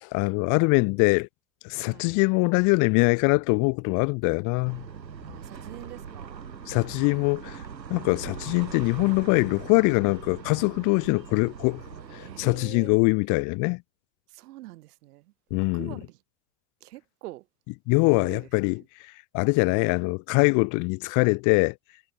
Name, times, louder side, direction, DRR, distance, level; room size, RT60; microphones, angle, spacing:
voice 1, 0.0-1.3 1.6-4.8 6.7-7.6 7.9-11.8 12.1-13.8 15.5-16.0 17.9-18.8 19.3-21.7, left 29 dB, 40° left, 0.7 m, -23 dB
sound 1, 4.6-12.5, right 6 dB, 85° right, 3.7 m, -41 dB
voice 2, 5.3-6.5 8.0-8.4 12.2-13.0 14.3-16.2 16.8-17.5 18.1-18.5, right 18 dB, 65° right, 1.5 m, -45 dB
figure-of-eight pair, 85°, 49 cm